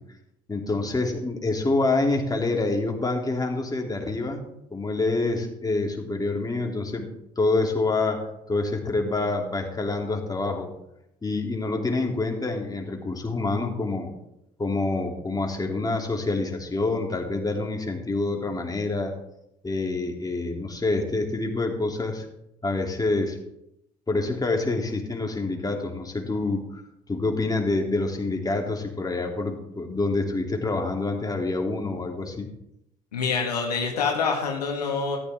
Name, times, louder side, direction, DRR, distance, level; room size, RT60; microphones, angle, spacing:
voice 1, 0.5-4.4 4.7-7.1 7.4-10.7 11.2-14.1 14.6-19.1 19.6-22.2 22.6-23.4 24.1-26.8 27.1-32.5, left 3 dB, 20° left, 1 dB, 3.1 m, -27 dB
voice 2, 33.1-35.2, left 5 dB, 85° left, 1 dB, 1.8 m, -26 dB
14.0 x 12.5 x 3.7 m, 0.81 s
hypercardioid pair, 55°, 20 cm